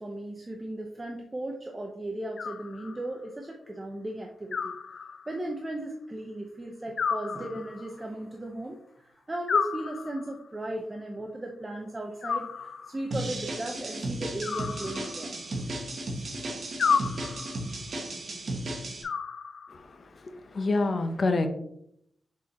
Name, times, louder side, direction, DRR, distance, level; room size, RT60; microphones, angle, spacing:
voice 1, 0.0-5.0 5.3-15.4 16.4-16.6, right 1 dB, 15° right, 1 dB, 0.7 m, -36 dB
Animal, 2.4-3.3 4.5-5.5 7.0-8.1 9.5-10.5 12.2-13.1 14.4-15.5 16.8-17.7 19.0-19.9, left 6 dB, 55° left, 0.3 m, -32 dB
sound 1, 13.1-19.0, right 1 dB, 45° right, 1.3 m, -35 dB
voice 2, 20.2-21.5, left 3 dB, 40° left, 7 dB, 0.7 m, -27 dB
6.2 x 4.3 x 4.2 m, 0.74 s
wide cardioid pair, 160°, 0 cm